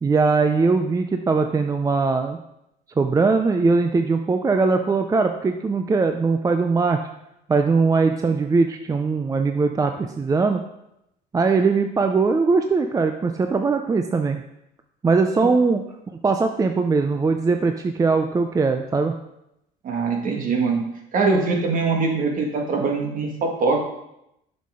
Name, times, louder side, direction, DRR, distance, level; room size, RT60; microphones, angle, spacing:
voice 1, 0.0-2.4 3.0-7.0 7.5-10.6 11.3-14.4 15.0-15.8 16.2-19.2, right 4 dB, 20° right, 6 dB, 0.5 m, -20 dB
voice 2, 19.8-20.8 21.1-23.8, right 4 dB, 50° right, 2 dB, 1.7 m, -22 dB
7.3 x 5.9 x 3.7 m, 0.83 s
supercardioid pair, 90°, 18 cm